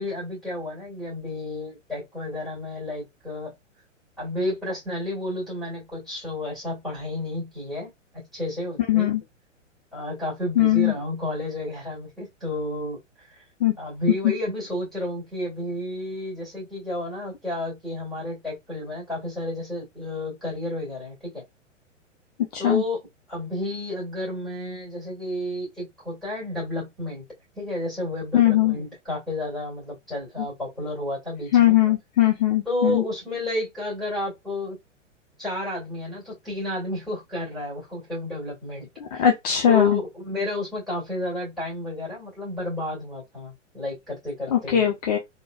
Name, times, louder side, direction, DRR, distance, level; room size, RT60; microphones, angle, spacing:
voice 1, 0.0-3.5 4.2-9.1 9.9-13.4 13.8-21.4 22.6-23.0 23.3-27.2 27.6-31.7 32.7-34.8 35.4-39.3 39.7-44.8, left 1 dB, ahead, 2.3 m, -31 dB
voice 2, 8.9-9.2 10.6-10.9 13.6-13.7 14.2-14.3 22.5-22.8 28.3-28.8 31.5-33.0 39.1-40.0 44.5-45.2, left 11 dB, 30° left, 0.6 m, -20 dB
3.8 x 2.8 x 2.3 m
figure-of-eight pair, 110°, 38 cm